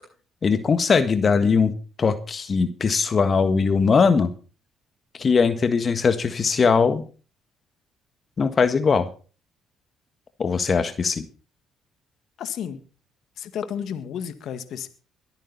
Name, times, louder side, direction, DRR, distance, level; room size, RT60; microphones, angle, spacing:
voice 1, 0.4-1.7 2.0-4.3 5.2-7.0 8.4-9.1 10.4-11.2, left 5 dB, 40° left, 10 dB, 1.6 m, -20 dB
voice 2, 12.4-12.8 13.4-14.9, left 8 dB, 70° left, 11 dB, 1.8 m, -32 dB
23.0 x 9.1 x 4.1 m, 0.37 s
supercardioid pair, 65°, 0 cm